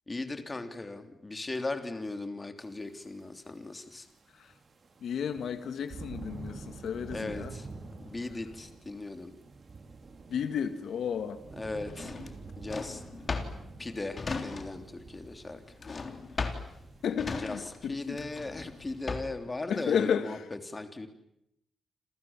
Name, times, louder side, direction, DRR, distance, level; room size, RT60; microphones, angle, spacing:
voice 1, 0.1-4.1 7.1-7.7 8.0-9.3 11.6-12.1 12.6-13.0 13.8-15.8 16.5-16.7 17.4-21.1, left 2 dB, 25° left, 7 dB, 3.3 m, -38 dB
sound 1, 2.7-2.8 3.9-19.1, right 4 dB, 50° right, 5.1 m, -48 dB
voice 2, 5.0-7.5 10.3-11.4 17.0-18.2 19.7-20.4, left 7 dB, 85° left, 10 dB, 1.9 m, -32 dB
Drawer open or close, 11.9-15.0 15.2-19.5, left 4 dB, 40° left, 3.5 m, -37 dB
29.5 x 26.5 x 7.4 m, 0.83 s
wide cardioid pair, 115°, 0 cm